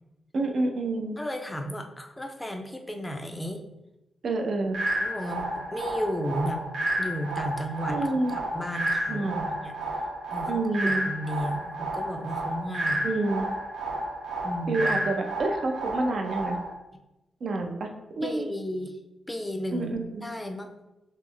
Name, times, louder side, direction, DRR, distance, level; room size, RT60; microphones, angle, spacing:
voice 1, 0.3-1.2 4.2-4.8 7.9-8.3 9.1-9.3 10.5-11.1 13.0-13.5 14.7-16.6 17.4-18.5 19.7-20.3, right 2 dB, 55° right, 4 dB, 0.5 m, -28 dB
voice 2, 1.2-3.6 5.0-6.6 7.0-8.0 8.3-9.8 10.3-10.5 10.8-13.1 14.4-15.0 18.2-19.0 19.3-20.0 20.2-20.7, equal, 10° left, 4 dB, 0.4 m, -33 dB
sound 1, 4.7-16.7, right 1 dB, 90° right, 0.9 m, -31 dB
3.2 x 2.9 x 3.7 m, 0.95 s
wide cardioid pair, 165°, 0 cm